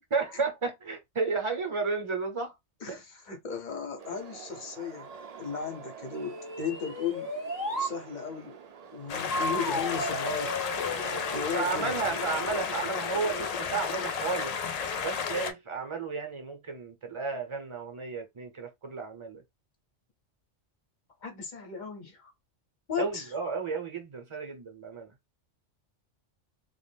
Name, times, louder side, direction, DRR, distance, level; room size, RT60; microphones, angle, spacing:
voice 1, 0.1-2.5 2.9-3.0 11.5-14.5 15.0-19.4 23.0-25.1, right 4 dB, 30° right, 0.7 m, -32 dB
voice 2, 2.8-5.1 5.4-7.3 7.8-8.6 8.9-10.7 11.3-11.9 21.2-22.3 22.9-23.3, left 6 dB, 45° left, 0.8 m, -36 dB
sound 1, 4.0-12.5, right 7 dB, 70° right, 0.3 m, -47 dB
sound 2, 6.1-7.9 9.3-11.4, equal, 25° left, 0.5 m, -34 dB
sound 3, 9.1-15.5, left 6 dB, 85° left, 0.3 m, -32 dB
2.5 x 2.2 x 3.3 m
omnidirectional pair, 1.2 m